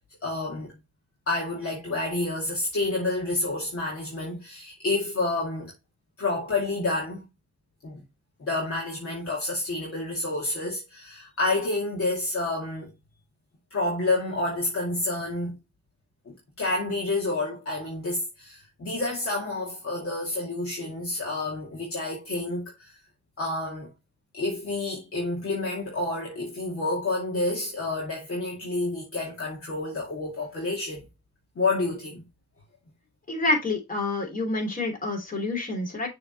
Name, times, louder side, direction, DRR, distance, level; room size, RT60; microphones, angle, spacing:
voice 1, 0.2-0.7 1.3-5.7 6.2-7.2 7.8-8.0 8.4-12.9 13.7-15.6 16.3-22.9 23.4-23.9 24.3-31.0 31.6-32.2, left 2 dB, 45° left, 2.3 m, -29 dB
voice 2, 33.3-36.1, left 2 dB, 30° left, 3.3 m, -28 dB
6.8 x 3.8 x 4.3 m
cardioid pair, 90°, 30 cm